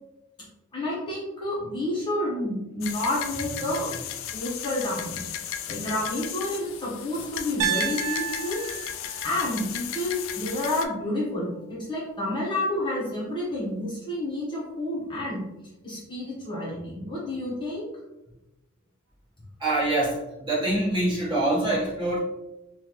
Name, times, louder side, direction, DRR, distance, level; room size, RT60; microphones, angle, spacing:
voice 1, 0.7-4.0 4.3-5.2 5.7-8.6 9.2-15.5 15.8-17.9, left 1 dB, 20° left, -6 dB, 0.8 m, -30 dB
sound 1, 2.8-10.9, left 9 dB, 60° left, 0.3 m, -35 dB
Piano, 7.6-11.7, right 11 dB, 70° right, 0.3 m, -34 dB
voice 2, 19.6-22.2, right 2 dB, 20° right, -7 dB, 1.1 m, -25 dB
3.7 x 2.2 x 2.9 m, 0.97 s
head